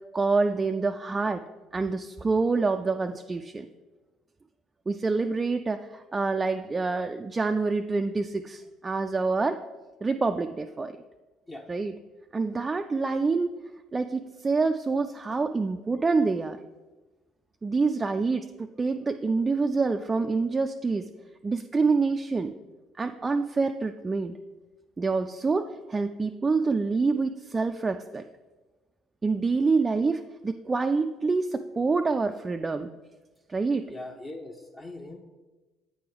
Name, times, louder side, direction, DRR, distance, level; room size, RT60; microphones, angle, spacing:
voice 1, 0.1-1.4 1.7-3.7 4.9-9.6 10.0-10.9 11.7-11.9 12.3-13.5 13.9-16.6 17.6-21.1 21.4-22.5 23.0-24.4 25.0-28.2 29.2-32.9 33.5-33.8, right 4 dB, 25° right, 6 dB, 0.3 m, -26 dB
voice 2, 33.9-35.2, left 2 dB, 20° left, 1 dB, 0.7 m, -41 dB
8.4 x 3.4 x 4.9 m, 1.2 s
figure-of-eight pair, 55°, 0 cm